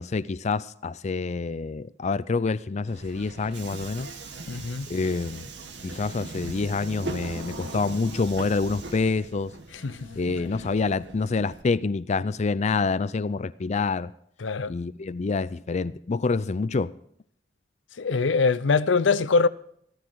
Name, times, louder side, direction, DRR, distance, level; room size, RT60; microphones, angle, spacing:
voice 1, 0.0-4.1 4.9-5.5 5.8-9.5 10.2-14.1 14.7-16.9, left 4 dB, 40° left, 0.4 m, -27 dB
Subway metro underground, 2.9-11.6, right 2 dB, 70° right, 2.0 m, -40 dB
voice 2, 4.5-4.9 9.7-10.1 14.4-14.7 18.0-19.5, left 4 dB, 90° left, 0.6 m, -23 dB
15.0 x 13.5 x 4.7 m
head